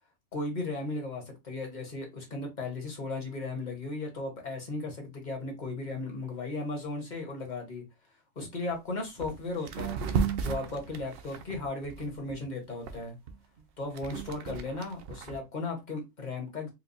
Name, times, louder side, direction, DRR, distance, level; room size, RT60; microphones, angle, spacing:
voice 1, 0.3-7.8 8.3-10.0 10.4-13.2 13.8-16.7, left 2 dB, 40° left, 1.2 m, -36 dB
sound 1, 8.7-8.8 9.2-9.4 9.7-12.3 12.9-15.4, right 6 dB, 65° right, 0.7 m, -34 dB
4.5 x 2.3 x 2.6 m
omnidirectional pair, 1.2 m